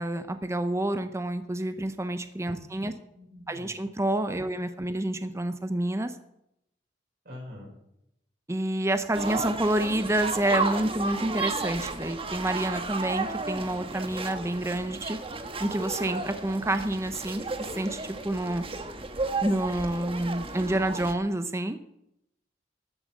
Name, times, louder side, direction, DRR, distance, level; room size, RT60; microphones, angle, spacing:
voice 1, 0.0-2.9 3.5-6.1 8.5-15.2 15.6-18.6 19.4-21.8, right 1 dB, 15° right, 9 dB, 0.7 m, -28 dB
voice 2, 3.2-3.7 4.4-4.5 7.2-7.7, left 1 dB, 55° right, -4 dB, 5.6 m, -44 dB
sound 1, 9.1-21.1, right 3 dB, 30° right, 1.3 m, -33 dB
13.0 x 8.9 x 7.7 m, 0.79 s
head